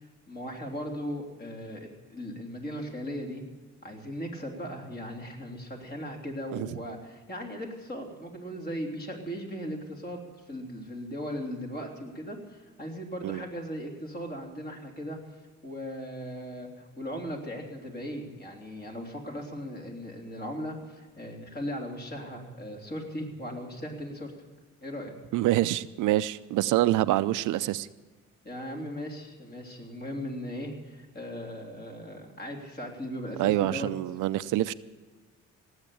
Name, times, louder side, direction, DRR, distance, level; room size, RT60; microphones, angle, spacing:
voice 1, 0.3-3.4 3.8-15.2 15.6-24.3 24.8-25.1 28.4-33.9, equal, 35° left, 1 dB, 3.5 m, -38 dB
voice 2, 25.3-27.9 33.4-34.7, right 15 dB, 85° right, 14 dB, 0.6 m, -26 dB
18.0 x 8.2 x 8.6 m, 1.3 s
cardioid pair, 90°, 30 cm